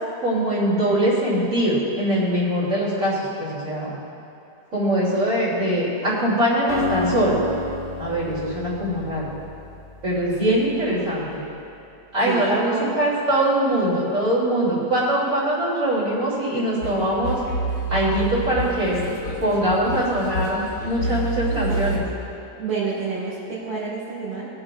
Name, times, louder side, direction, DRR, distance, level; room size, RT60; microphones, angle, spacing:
voice 1, 0.2-3.9 4.7-7.4 8.0-9.3 10.0-11.4 12.1-17.4 17.9-19.0 19.4-22.1, right 1 dB, 50° right, -8 dB, 3.3 m, -22 dB
Acoustic guitar, 6.7-10.8, left 2 dB, 60° left, 3.0 m, -31 dB
voice 2, 10.4-11.1 12.2-12.9 21.5-21.7 22.6-24.5, right 4 dB, 65° right, -8 dB, 2.3 m, -29 dB
sound 1, 16.8-22.0, right 2 dB, 90° left, 2.0 m, -28 dB
21.5 x 7.7 x 2.4 m, 2.7 s
omnidirectional pair, 1.7 m